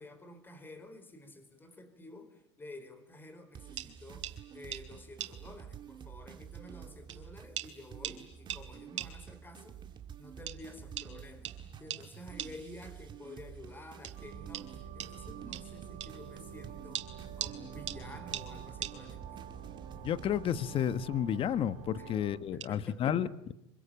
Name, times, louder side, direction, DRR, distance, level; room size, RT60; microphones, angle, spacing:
voice 1, 0.0-9.8 10.2-11.5 11.8-19.5 21.9-22.1 22.5-23.2, left 1 dB, 15° left, 10 dB, 4.5 m, -51 dB
sound 1, 3.6-21.0, right 8 dB, 30° right, 2.3 m, -49 dB
sound 2, 3.8-3.9 4.2-4.4 4.7-4.8 5.2-5.3 6.3-6.4 7.1-7.2 7.6-7.7 8.0-8.2 8.5-8.6 9.0-9.1 10.5-10.6 11.0-11.1 11.4-11.6 11.9-12.0 12.4-12.5 14.0-14.2 14.5-14.7 15.0-15.1 15.5-15.7 16.0-16.1 16.9-17.6 17.9-18.0 18.3-18.5 18.8-19.0 20.6-20.9 21.1-21.5 22.6-22.7, right 11 dB, 90° right, 3.4 m, -39 dB
sound 3, 14.1-22.4, right 8 dB, 50° right, 5.8 m, -48 dB
voice 2, 20.0-23.5, left 9 dB, 35° left, 14 dB, 1.3 m, -31 dB
25.5 x 25.5 x 9.1 m, 0.80 s
supercardioid pair, 110°, 15 cm